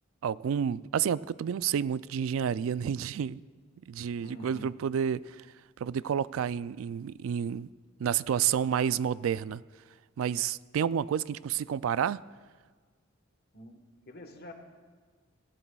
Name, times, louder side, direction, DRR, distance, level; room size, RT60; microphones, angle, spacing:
voice 1, 0.2-3.4 3.9-5.5 5.8-7.7 8.0-9.6 10.2-12.2, right 8 dB, 90° right, 0.3 m, -30 dB
voice 2, 4.2-4.8 13.5-13.8 14.1-14.5, left 1 dB, 50° left, 1.3 m, -46 dB
19.5 x 16.5 x 2.3 m
head